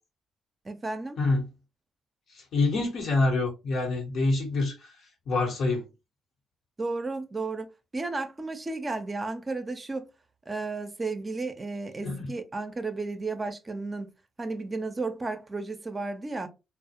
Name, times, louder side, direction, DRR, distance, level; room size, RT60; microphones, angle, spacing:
voice 1, 0.6-1.2 6.8-10.1 10.5-14.1 14.4-16.5, right 3 dB, 30° right, 0.5 m, -33 dB
voice 2, 2.3-4.9 5.3-5.8 12.0-12.3, left 3 dB, 70° left, 0.9 m, -26 dB
2.3 x 2.0 x 2.7 m
supercardioid pair, 60°, 0 cm